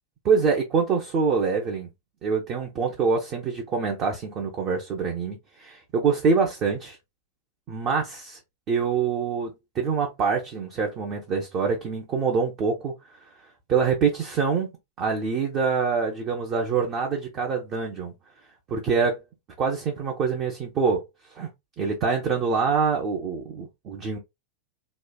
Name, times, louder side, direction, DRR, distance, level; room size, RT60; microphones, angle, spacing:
voice 1, 0.2-1.9 2.2-7.0 7.7-8.4 8.7-12.9 13.7-14.7 15.0-18.1 18.7-19.2 19.6-21.0 21.3-21.5 21.8-24.2, right 5 dB, 35° right, 0.6 m, -25 dB
3.1 x 2.2 x 2.3 m
figure-of-eight pair, 90°, 0 cm